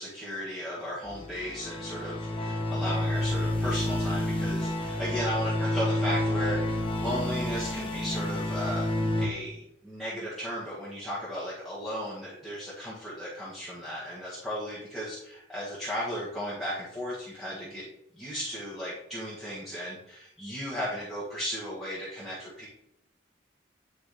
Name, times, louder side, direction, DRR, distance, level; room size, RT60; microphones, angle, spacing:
voice 1, 0.0-8.9 9.2-17.9 18.1-22.7, equal, ahead, -10 dB, 1.7 m, -35 dB
sound 1, 1.1-9.3, left 1 dB, 25° left, 0.8 m, -29 dB
9.8 x 5.0 x 3.4 m, 0.80 s
head